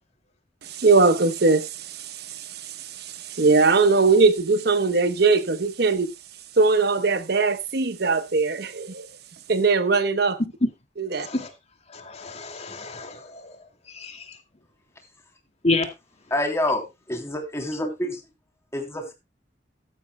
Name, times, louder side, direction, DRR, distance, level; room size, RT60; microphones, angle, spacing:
voice 1, 0.6-6.1 6.6-9.1 9.5-10.4 11.0-11.3, right 4 dB, 60° right, 1.0 m, -21 dB
voice 2, 11.2-11.5 11.9-13.5 13.9-14.2 15.6-15.8, left 3 dB, 35° left, 2.2 m, -28 dB
voice 3, 16.3-18.2 18.7-19.1, left 1 dB, 15° left, 3.1 m, -27 dB
15.0 x 12.0 x 2.2 m
head